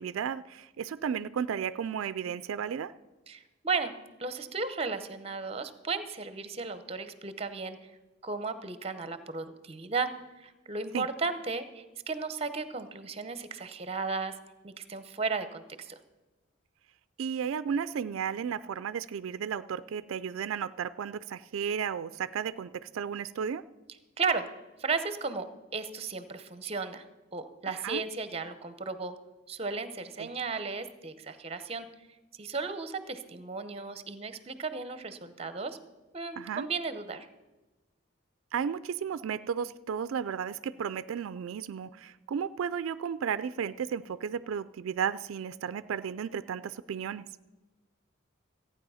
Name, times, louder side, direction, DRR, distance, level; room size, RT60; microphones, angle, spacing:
voice 1, 0.0-2.9 10.9-11.1 17.2-23.7 27.7-28.0 30.2-30.3 36.4-36.7 38.5-47.3, right 7 dB, 85° right, 15 dB, 0.4 m, -34 dB
voice 2, 3.3-3.9 4.2-7.8 8.2-10.1 10.4-14.3 14.6-15.9 24.2-24.5 24.8-25.5 25.7-27.0 27.3-29.1 29.5-31.9 32.4-35.8 36.1-37.3, right 4 dB, 30° right, 11 dB, 0.7 m, -34 dB
14.5 x 9.2 x 5.6 m, 1.2 s
head